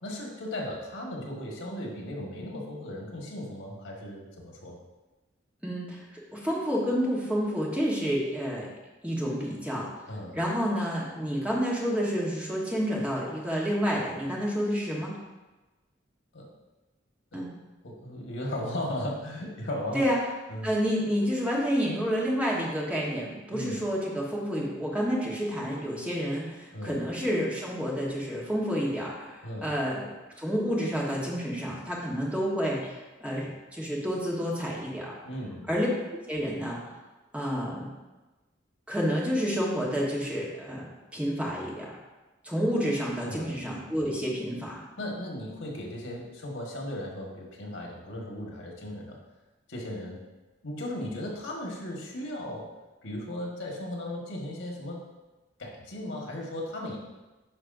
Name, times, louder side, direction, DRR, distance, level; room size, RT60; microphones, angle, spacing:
voice 1, 0.0-4.8 10.1-10.4 16.3-16.5 17.3-17.5 17.8-20.1 20.5-20.7 23.5-23.8 26.7-27.0 29.4-29.7 35.2-35.7 43.2-43.5 45.0-49.2 49.7-50.2 50.6-52.7 53.0-55.0 55.6-57.0, left 1 dB, 85° left, -1 dB, 1.6 m, -36 dB
voice 2, 5.6-6.0 6.3-8.7 9.0-9.9 10.3-15.1 17.3-17.5 19.9-20.2 20.6-30.1 30.4-35.1 35.7-36.9 37.3-37.9 38.9-42.0 42.4-44.8, equal, 5° right, -5 dB, 1.3 m, -29 dB
9.6 x 5.3 x 2.6 m, 1.1 s
head